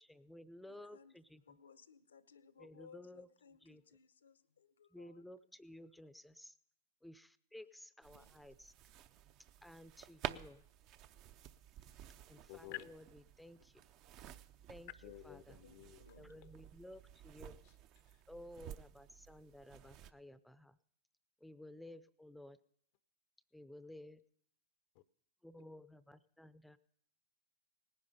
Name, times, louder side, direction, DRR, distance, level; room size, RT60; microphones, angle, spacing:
voice 1, 0.0-1.6 2.6-3.3 3.6-3.8 4.9-6.6 7.0-8.7 9.6-10.7 12.3-13.8 14.7-14.9 15.2-15.6 16.2-17.6 18.3-20.8 21.4-22.6 23.5-24.2 25.4-26.8, left 1 dB, ahead, 0.6 m, -55 dB
voice 2, 0.7-1.2 1.5-5.3 8.1-8.4 15.6-16.4, left 6 dB, 85° left, 0.9 m, -62 dB
sound 1, 8.0-20.1, right 11 dB, 45° right, 0.6 m, -52 dB
voice 3, 12.5-13.0 15.0-16.5 25.0-25.1, left 16 dB, 55° left, 0.6 m, -51 dB
18.5 x 10.5 x 5.5 m
hypercardioid pair, 110°, 0 cm